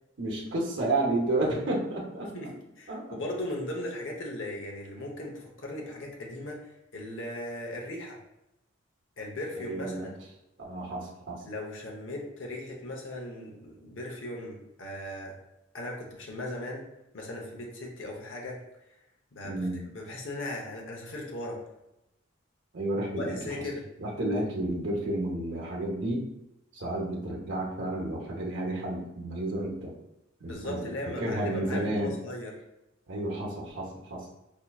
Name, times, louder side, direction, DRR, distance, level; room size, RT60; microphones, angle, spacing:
voice 1, 0.2-2.3 2.9-3.0 9.6-10.1 10.6-11.4 19.4-19.8 22.7-23.6 24.0-26.3 26.7-29.9 30.4-30.9 31.2-32.1 33.1-34.3, right 1 dB, 60° right, -2 dB, 0.8 m, -31 dB
voice 2, 2.8-8.2 9.2-10.1 11.5-15.4 15.7-16.8 17.1-18.6 19.3-21.6 23.1-23.9 30.4-32.5, left 1 dB, 70° left, -1 dB, 0.8 m, -38 dB
4.5 x 2.7 x 2.3 m, 0.89 s
head